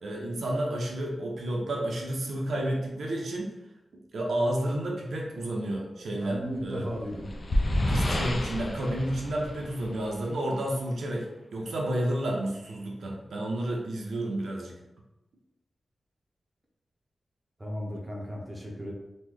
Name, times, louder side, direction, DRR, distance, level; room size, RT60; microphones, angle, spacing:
voice 1, 0.0-3.5 4.1-6.9 7.9-14.8, right 1 dB, 90° right, -1 dB, 0.6 m, -31 dB
voice 2, 6.2-7.3 17.6-18.9, equal, 15° right, -3 dB, 0.6 m, -35 dB
sound 1, 6.7-10.3, left 1 dB, 45° left, 0.4 m, -29 dB
3.1 x 2.2 x 3.6 m, 0.96 s
wide cardioid pair, 140°, 0 cm